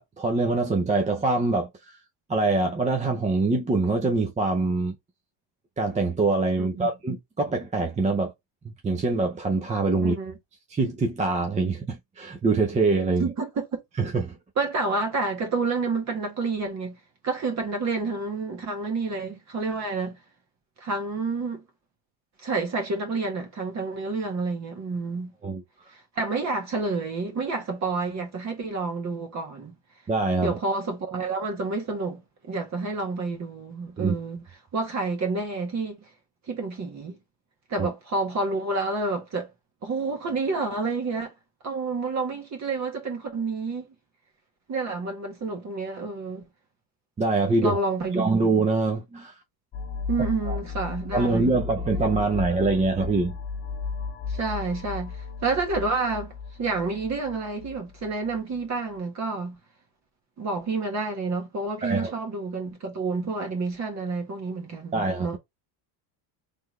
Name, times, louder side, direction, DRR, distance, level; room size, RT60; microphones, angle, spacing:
voice 1, 0.0-1.7 2.3-4.9 5.8-8.3 8.8-10.1 10.7-13.3 14.0-14.4 25.4-25.6 30.1-30.6 34.0-34.1 47.2-47.8 48.1-49.3 50.5-50.6 51.1-53.3 61.8-62.1 64.9-65.4, right 3 dB, 15° right, 0.5 m, -24 dB
voice 2, 10.0-10.3 13.2-13.7 14.6-17.0 17.2-20.2 20.8-21.6 22.4-25.3 25.9-29.7 30.4-34.4 34.7-36.0 36.5-37.2 37.7-39.5 39.8-41.3 41.6-43.9 44.7-46.4 47.6-48.3 50.1-51.5 54.3-56.3 56.6-59.6 60.4-65.4, right 3 dB, 35° right, 1.4 m, -29 dB
sound 1, 49.7-58.4, left 5 dB, 30° left, 0.9 m, -35 dB
3.8 x 3.4 x 3.1 m
cardioid pair, 140°, 49 cm